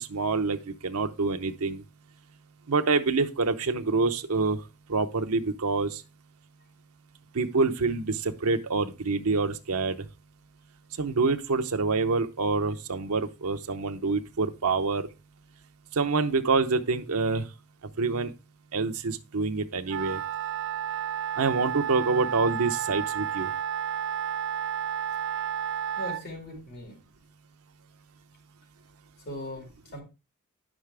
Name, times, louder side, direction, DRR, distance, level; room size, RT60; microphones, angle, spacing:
voice 1, 0.0-1.8 2.7-4.6 4.9-6.0 7.3-10.1 11.0-15.1 15.9-17.5 18.0-18.3 18.7-20.2 21.4-23.5, right 4 dB, 80° right, 0.7 m, -26 dB
Wind instrument woodwind instrument, 19.9-26.2, right 9 dB, 55° right, 0.3 m, -31 dB
voice 2, 26.0-27.0 29.2-30.0, equal, 45° left, 4.9 m, -39 dB
9.7 x 6.3 x 3.4 m
head